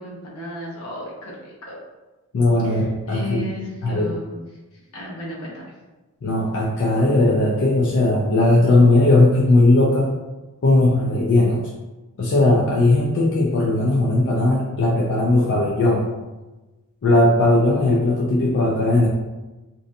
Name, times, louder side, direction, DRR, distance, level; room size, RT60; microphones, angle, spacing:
voice 1, 0.0-1.8 2.6-5.6, left 1 dB, 80° left, -4 dB, 0.8 m, -35 dB
voice 2, 2.3-3.5 3.8-4.1 6.2-10.1 10.6-11.6 12.2-16.1 17.0-19.1, left 2 dB, 55° left, -4 dB, 0.4 m, -18 dB
2.6 x 2.2 x 2.5 m, 1.1 s
head